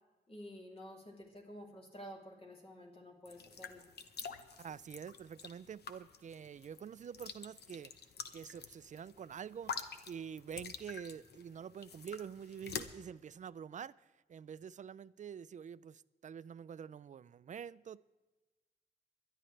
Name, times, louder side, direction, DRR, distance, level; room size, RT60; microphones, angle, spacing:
voice 1, 0.3-3.9, equal, 35° left, 3.1 m, -51 dB
sound 1, 3.3-12.8, left 6 dB, 80° left, 1.0 m, -47 dB
voice 2, 4.6-7.9 8.3-13.9 14.3-18.0, right 8 dB, 50° right, 0.4 m, -47 dB
23.5 x 11.0 x 3.3 m
wide cardioid pair, 130°, 17 cm